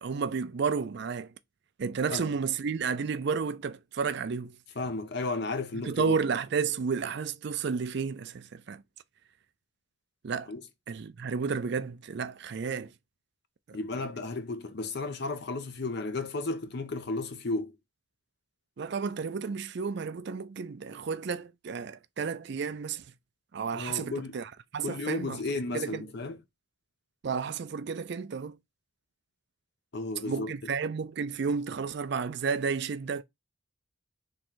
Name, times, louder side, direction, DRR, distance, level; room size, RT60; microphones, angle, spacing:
voice 1, 0.0-1.3 1.8-4.6 5.7-8.8 10.2-10.5 10.9-12.9 13.7-13.8 18.8-23.0 23.5-25.4 25.7-26.0 27.2-28.6 30.2-33.2, right 5 dB, 55° right, 0.4 m, -32 dB
voice 2, 4.8-6.2 10.5-10.6 13.7-17.7 23.7-24.4 24.8-26.4 29.9-30.5, left 3 dB, 50° left, 0.7 m, -33 dB
3.7 x 3.1 x 4.5 m
head